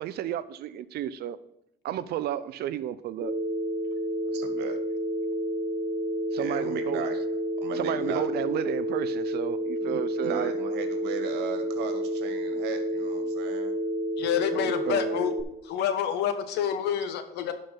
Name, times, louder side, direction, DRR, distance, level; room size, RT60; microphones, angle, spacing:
voice 1, 0.0-1.4 1.8-3.3 6.3-7.0 7.7-10.5 14.5-15.2, right 11 dB, 70° right, 15 dB, 0.7 m, -32 dB
Telephone, 3.2-15.4, equal, 25° right, 3.2 m, -30 dB
voice 2, 4.2-4.8 6.3-7.2 7.6-8.2 9.8-13.8, right 7 dB, 85° right, 7 dB, 1.8 m, -37 dB
voice 3, 14.2-15.3 15.6-17.5, left 9 dB, 80° left, 9 dB, 1.4 m, -28 dB
11.5 x 5.3 x 5.8 m, 0.82 s
cardioid pair, 110°, 17 cm